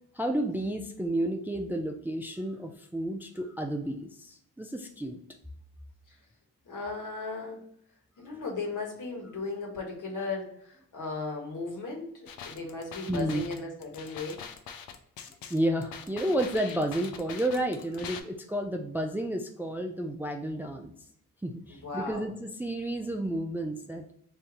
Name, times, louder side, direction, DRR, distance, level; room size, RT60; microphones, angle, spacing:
voice 1, 0.1-5.2 13.1-13.4 15.5-20.9 21.4-24.0, right 1 dB, 5° right, 3 dB, 0.4 m, -31 dB
voice 2, 6.6-7.6 8.2-14.4 21.7-22.3, left 3 dB, 60° left, 0 dB, 1.5 m, -36 dB
sound 1, 12.3-18.2, left 7 dB, 80° left, 0.6 m, -43 dB
3.3 x 2.7 x 3.8 m, 0.68 s
cardioid pair, 65°, 35 cm